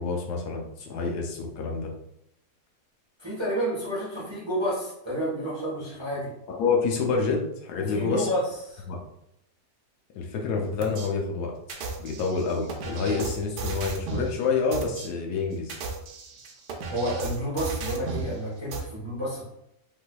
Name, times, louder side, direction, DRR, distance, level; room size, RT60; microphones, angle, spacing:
voice 1, 0.0-1.9 6.5-8.3 8.9-9.0 10.2-11.5 12.0-15.8, left 4 dB, 75° left, 1 dB, 1.1 m, -28 dB
voice 2, 3.2-6.3 7.8-8.8 16.9-19.4, equal, 20° right, -7 dB, 0.7 m, -30 dB
sound 1, 10.8-11.1 11.7-14.3 14.7-15.1 15.6-18.3 18.7-18.8, right 4 dB, 80° right, 1.2 m, -34 dB
3.4 x 3.2 x 2.2 m, 0.79 s
omnidirectional pair, 1.8 m